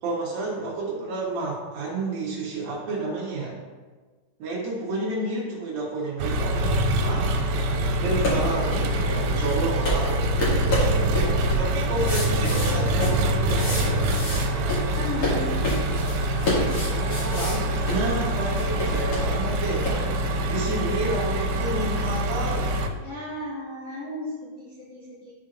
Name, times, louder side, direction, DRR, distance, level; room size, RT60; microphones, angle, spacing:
voice 1, 0.0-3.5 4.4-7.3 8.0-10.3 11.6-14.0 16.9-22.8, right 2 dB, 70° right, -4 dB, 2.2 m, -30 dB
Engine, 6.2-22.9, right 1 dB, 90° right, 3.2 m, -25 dB
sound 1, 8.0-20.0, equal, 45° left, 2.1 m, -29 dB
voice 2, 10.5-11.4 14.9-15.6 23.0-25.3, left 1 dB, 75° left, -10 dB, 1.6 m, -36 dB
13.5 x 4.6 x 2.5 m, 1.4 s
omnidirectional pair, 5.8 m